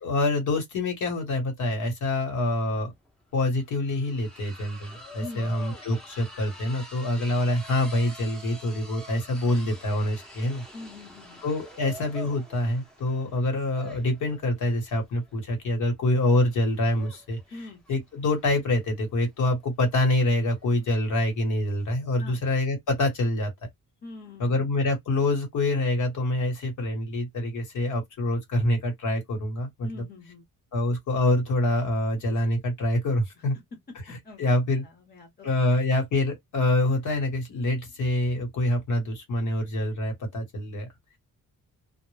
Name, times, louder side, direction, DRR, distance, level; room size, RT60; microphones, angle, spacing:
voice 1, 0.0-2.9 3.3-10.6 11.4-17.4 17.9-23.5 24.4-30.0 30.7-33.6 34.1-34.8 35.4-40.9, left 1 dB, 60° left, 1.1 m, -26 dB
sound 1, 3.0-21.9, equal, ahead, 0.7 m, -47 dB
voice 2, 5.2-5.6 10.7-11.4 17.5-17.8 22.2-22.4 24.0-24.7 29.8-30.4 33.5-33.8 34.2-35.8, left 2 dB, 30° left, 0.9 m, -44 dB
2.1 x 2.1 x 3.1 m
cardioid pair, 140°, 33 cm